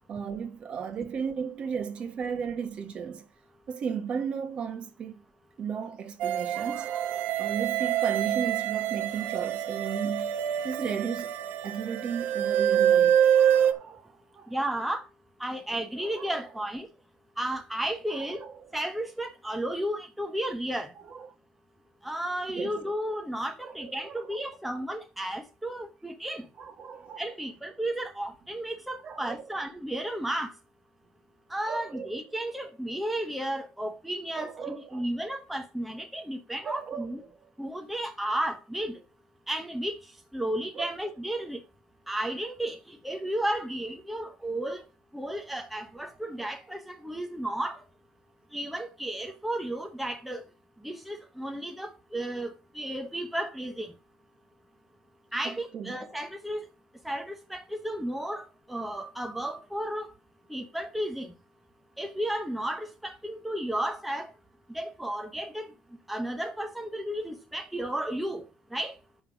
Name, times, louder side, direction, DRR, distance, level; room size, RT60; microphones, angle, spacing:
voice 1, 0.0-3.2 3.7-5.2 5.6-10.4 10.6-11.3 11.6-14.5 16.0-16.3 18.1-18.7 21.1-21.3 22.6-22.8 23.6-24.4 26.6-27.2 29.0-29.4 31.7-32.1 34.3-35.1 36.6-37.4 40.7-40.9 55.4-56.0, right 6 dB, 35° right, 1.3 m, -35 dB
sound 1, 6.2-13.7, right 10 dB, 55° right, 0.9 m, -26 dB
voice 2, 14.5-15.0 15.4-16.9 17.4-18.4 18.7-20.9 22.0-26.4 27.2-30.5 31.5-37.2 37.6-39.0 39.5-39.9 40.3-41.6 42.1-44.8 45.1-47.8 48.5-50.4 50.8-53.9 55.3-56.6 57.0-60.1 60.5-61.3 62.0-64.3 64.7-65.7 66.1-68.4 68.7-68.9, right 1 dB, ahead, 0.9 m, -33 dB
7.1 x 5.7 x 6.0 m
cardioid pair, 170°, 3 cm